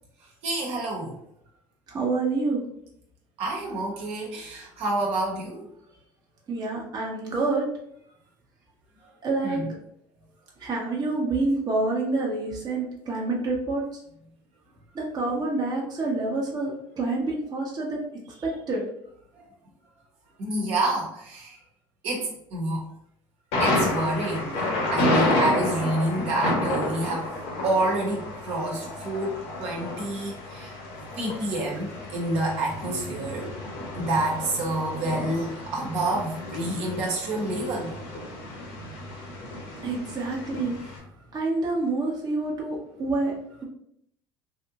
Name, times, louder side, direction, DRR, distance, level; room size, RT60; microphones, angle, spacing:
voice 1, 0.4-1.1 3.4-5.7 9.0-9.1 9.4-9.7 19.3-19.4 20.4-21.6 22.0-22.9 23.6-27.3 27.6-30.7 31.2-33.5 34.0-37.9, right 2 dB, 60° right, -1 dB, 1.1 m, -28 dB
voice 2, 1.9-2.6 6.5-7.7 9.2-9.6 10.6-14.0 14.9-18.8 39.8-40.8 41.3-43.3, right 3 dB, 35° right, -3 dB, 0.9 m, -27 dB
Thunder, 23.5-41.0, left 1 dB, 70° left, 1.2 m, -30 dB
3.3 x 2.6 x 2.9 m, 0.73 s
hypercardioid pair, 75°, 12 cm